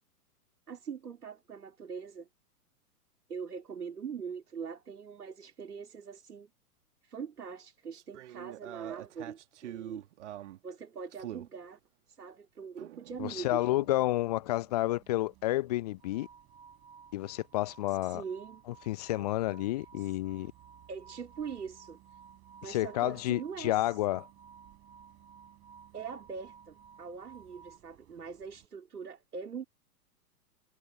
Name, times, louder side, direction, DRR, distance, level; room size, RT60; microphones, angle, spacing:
voice 1, 0.7-2.3 3.3-6.5 7.0-10.0 10.6-11.8 12.1-13.7 17.9-18.6 20.0-20.1 20.9-22.0 22.6-23.9 25.9-29.6, right 6 dB, 70° right, 2.4 m, -42 dB
sound 1, 7.9-10.6 11.1-11.5 12.8-13.9, right 12 dB, 50° right, 1.9 m, -45 dB
Bus, 13.1-28.7, right 20 dB, 30° right, 4.4 m, -62 dB
voice 2, 13.2-16.3 17.1-18.2 18.9-20.5 22.6-24.2, left 16 dB, 25° left, 0.6 m, -30 dB
sound 2, 13.9-14.0 16.0-27.8, right 6 dB, 10° right, 2.0 m, -56 dB
figure-of-eight pair, 110°, 47 cm